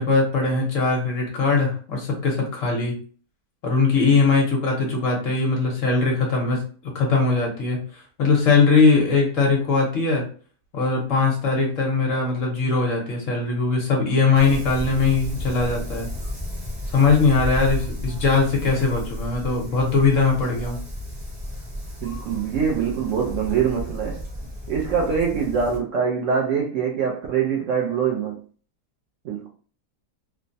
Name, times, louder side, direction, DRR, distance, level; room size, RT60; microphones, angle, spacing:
voice 1, 0.0-2.9 3.6-6.6 6.9-10.2 10.7-16.1 16.9-20.8, left 4 dB, 60° left, 1.0 m, -20 dB
Wind, 14.4-25.8, left 1 dB, 40° right, 1.0 m, -33 dB
voice 2, 22.0-24.2 24.7-28.4 29.2-29.5, right 6 dB, 70° right, 0.8 m, -24 dB
3.1 x 2.1 x 2.5 m
omnidirectional pair, 1.7 m